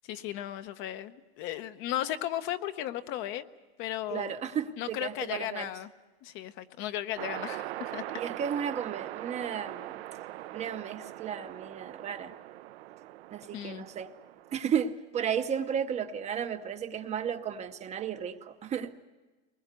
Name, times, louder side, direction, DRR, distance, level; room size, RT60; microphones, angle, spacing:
voice 1, 0.1-3.5 3.8-4.3 4.8-5.9 6.2-8.0 13.5-13.8, left 12 dB, 40° left, 10 dB, 0.8 m, -35 dB
voice 2, 4.1-5.7 8.1-10.0 10.5-12.3 13.3-14.1 14.5-18.9, right 8 dB, 20° right, 9 dB, 0.7 m, -33 dB
sound 1, 7.2-14.5, right 15 dB, 70° right, 0.7 m, -41 dB
23.0 x 20.5 x 8.2 m, 1.2 s
supercardioid pair, 145°, 32 cm